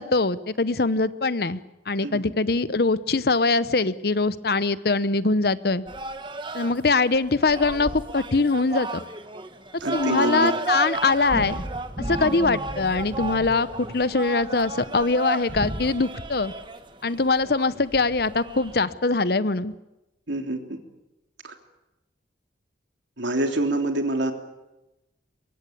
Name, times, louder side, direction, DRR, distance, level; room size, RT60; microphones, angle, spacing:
voice 1, 0.0-1.6 1.9-5.8 6.5-9.0 9.9-11.6 12.1-16.5 17.0-19.7, left 3 dB, 55° left, 15 dB, 0.9 m, -23 dB
sound 1, 5.9-18.8, right 2 dB, 25° right, 1.3 m, -33 dB
voice 2, 9.8-10.5 20.3-20.8 21.4-21.5 23.2-24.3, right 1 dB, 85° right, 5 dB, 3.2 m, -26 dB
23.5 x 23.0 x 8.6 m, 0.98 s
head